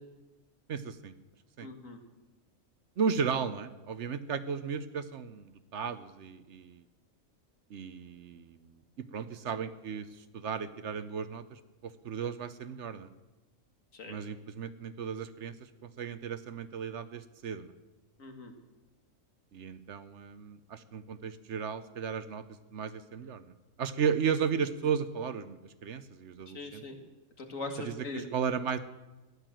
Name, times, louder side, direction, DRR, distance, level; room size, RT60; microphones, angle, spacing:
voice 1, 0.7-1.1 1.6-1.7 3.0-6.8 7.7-13.1 14.1-17.7 19.5-22.4 22.7-23.5 23.8-26.8 27.8-28.8, right 6 dB, 65° right, 12 dB, 1.0 m, -35 dB
voice 2, 1.6-2.0 13.9-14.2 18.2-18.5 26.5-27.0 27.4-28.2, left 2 dB, 80° left, 4 dB, 2.3 m, -40 dB
15.0 x 11.0 x 7.6 m, 1.1 s
omnidirectional pair, 1.4 m